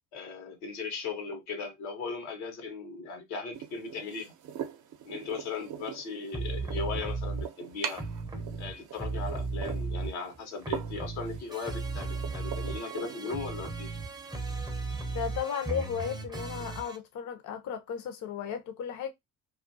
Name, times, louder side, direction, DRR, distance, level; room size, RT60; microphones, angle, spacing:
voice 1, 0.1-4.3 5.0-8.0 8.6-14.0, left 4 dB, 85° left, 1.0 m, -38 dB
sound 1, 3.5-15.4, right 8 dB, 50° right, 0.6 m, -43 dB
sound 2, 6.3-7.5 7.9-10.4 10.6-17.0, right 3 dB, 10° right, 0.6 m, -35 dB
voice 2, 15.1-19.1, left 7 dB, 50° left, 0.6 m, -35 dB
2.4 x 2.2 x 2.5 m
supercardioid pair, 70°, 39 cm